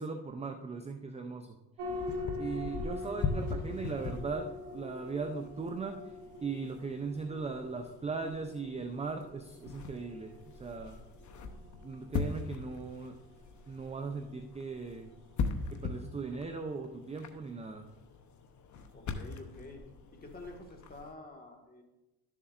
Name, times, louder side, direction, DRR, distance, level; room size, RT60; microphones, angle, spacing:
voice 1, 0.0-1.6 2.4-6.0 6.4-11.0 11.8-13.1 13.7-15.1 15.7-17.9, right 4 dB, 15° right, 6 dB, 0.5 m, -38 dB
sound 1, 1.8-16.6, left 2 dB, 85° right, 1.5 m, -45 dB
sound 2, 1.9-21.1, left 5 dB, 45° left, 0.9 m, -41 dB
voice 2, 18.9-19.8 20.1-21.8, left 2 dB, 20° left, 2 dB, 1.6 m, -48 dB
12.0 x 7.2 x 2.5 m, 0.99 s
cardioid pair, 100°, 42 cm